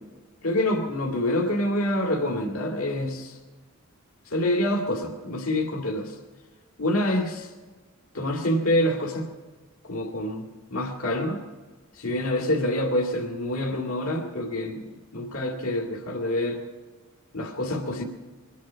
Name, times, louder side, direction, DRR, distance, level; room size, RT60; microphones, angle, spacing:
voice 1, 0.4-3.4 4.3-6.1 6.8-7.5 8.1-9.3 9.8-11.4 12.0-14.9 15.1-16.6 17.3-18.0, left 1 dB, 70° left, 0 dB, 2.2 m, -26 dB
23.5 x 10.5 x 5.1 m, 1.4 s
head